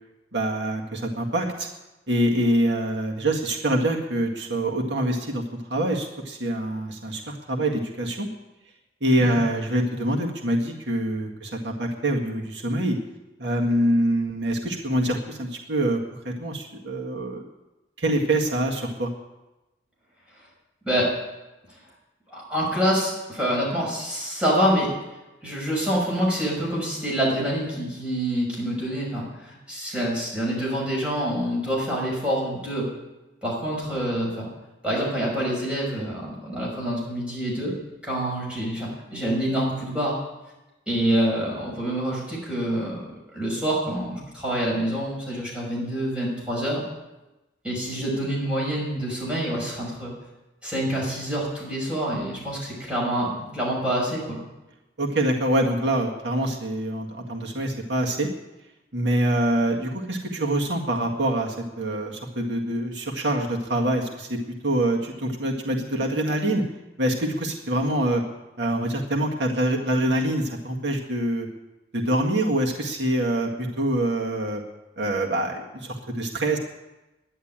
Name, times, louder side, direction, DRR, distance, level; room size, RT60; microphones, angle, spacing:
voice 1, 0.3-1.7 2.1-5.4 5.7-8.3 9.0-13.0 13.4-17.4 18.0-19.1 55.0-58.3 58.9-66.6 67.0-68.2 68.6-71.5 71.9-74.6 75.0-76.6, right 1 dB, 90° right, 0 dB, 1.9 m, -25 dB
voice 2, 22.3-24.9 25.4-32.9 33.4-34.5 34.8-37.7 38.0-40.2 40.9-43.1 43.3-46.8 47.6-50.1 50.6-54.4, equal, 5° right, -5 dB, 5.9 m, -26 dB
11.0 x 10.5 x 8.8 m, 1.0 s
head